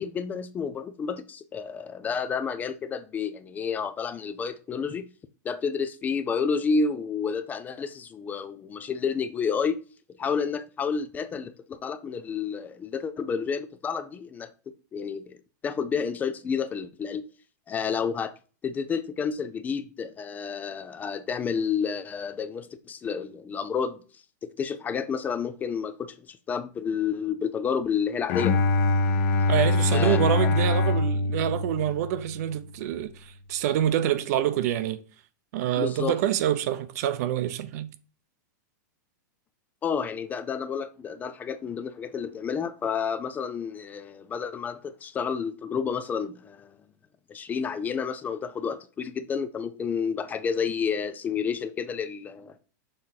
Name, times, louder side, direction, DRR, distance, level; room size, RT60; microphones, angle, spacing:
voice 1, 0.0-5.1 5.4-9.8 10.2-14.5 14.9-15.4 15.6-17.3 17.7-18.3 18.6-28.6 29.9-30.5 35.8-36.1 39.8-46.8 47.3-52.6, left 6 dB, 15° left, 0.4 m, -30 dB
Bowed string instrument, 28.3-32.4, left 2 dB, 45° left, 0.8 m, -24 dB
voice 2, 29.5-35.0 35.5-37.9, right 11 dB, 60° right, 0.7 m, -26 dB
6.5 x 4.2 x 4.0 m
supercardioid pair, 150°, 10 cm